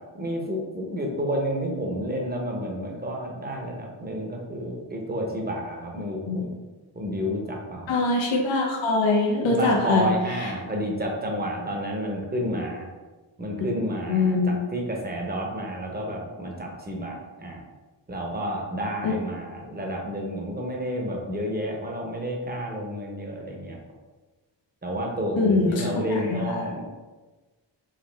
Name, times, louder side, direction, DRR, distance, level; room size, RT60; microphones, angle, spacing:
voice 1, 0.1-6.5 7.0-7.9 9.4-12.9 13.4-17.6 18.1-23.8 24.8-26.8, equal, 20° right, 0 dB, 0.8 m, -30 dB
voice 2, 7.9-10.1 10.4-10.5 14.1-14.5 19.0-19.1 25.4-26.6, left 3 dB, 90° left, 0 dB, 0.8 m, -23 dB
5.0 x 2.7 x 3.3 m, 1.2 s
wide cardioid pair, 135°, 44 cm